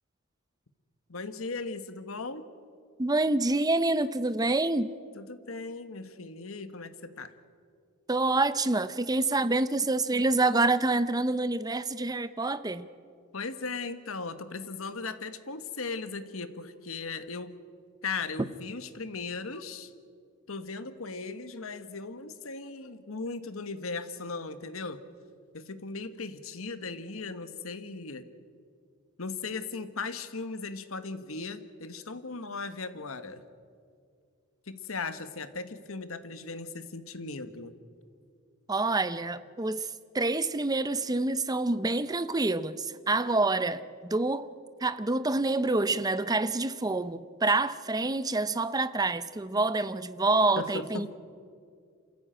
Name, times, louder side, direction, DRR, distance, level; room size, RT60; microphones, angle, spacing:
voice 1, 1.1-2.4 5.1-7.3 13.3-17.6 18.0-19.9 20.5-25.0 25.5-28.2 29.2-33.4 34.7-37.8 50.6-51.1, left 4 dB, 80° left, 1.4 m, -37 dB
voice 2, 3.0-4.9 8.1-12.9 38.7-44.5 44.8-51.2, right 2 dB, 20° right, 0.7 m, -27 dB
27.5 x 15.0 x 9.0 m
head